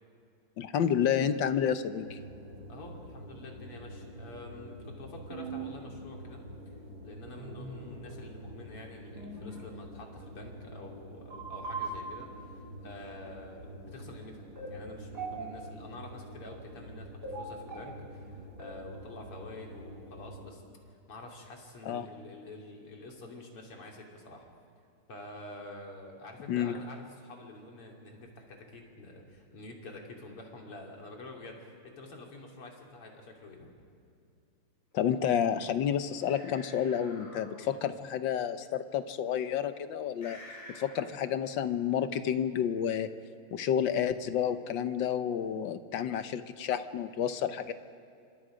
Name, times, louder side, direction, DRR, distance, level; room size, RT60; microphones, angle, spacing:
voice 1, 0.6-2.2 21.9-22.1 26.5-26.7 34.9-40.4 40.7-43.1 43.5-47.7, left 9 dB, 65° left, 11 dB, 1.4 m, -30 dB
sound 1, 2.0-20.5, right 2 dB, 45° right, 3.7 m, -44 dB
voice 2, 2.7-6.4 7.0-20.6 20.9-24.5 25.1-33.7 37.5-37.8, left 2 dB, 90° left, 0 dB, 3.9 m, -47 dB
sound 2, 36.1-37.6 40.2-41.4, left 1 dB, 35° left, 4.7 m, -50 dB
27.5 x 25.5 x 5.1 m, 2.6 s
omnidirectional pair, 2.4 m